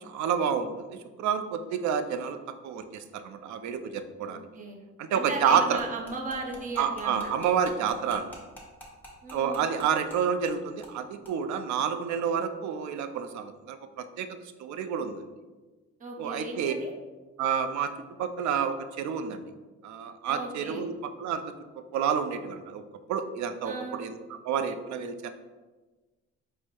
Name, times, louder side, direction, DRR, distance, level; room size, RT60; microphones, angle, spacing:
voice 1, 0.0-0.9 1.2-2.4 2.6-4.4 5.0-5.8 6.8-8.2 9.3-14.3 14.6-15.2 16.2-16.7 17.4-17.9 18.2-19.4 19.8-20.9 21.2-21.4 21.9-22.8 23.1-24.2 24.4-25.3, right 7 dB, 70° right, 9 dB, 0.4 m, -29 dB
voice 2, 4.2-4.8 5.1-7.4 9.2-9.7 16.0-16.9 20.3-20.8 23.6-24.0, right 2 dB, 25° right, 1 dB, 0.7 m, -37 dB
sound 1, 5.8-10.2 10.4-10.5 10.8-11.0 11.2-11.3, equal, 5° left, 1.2 m, -47 dB
4.4 x 2.1 x 4.4 m, 1.3 s
cardioid pair, 90°, 30 cm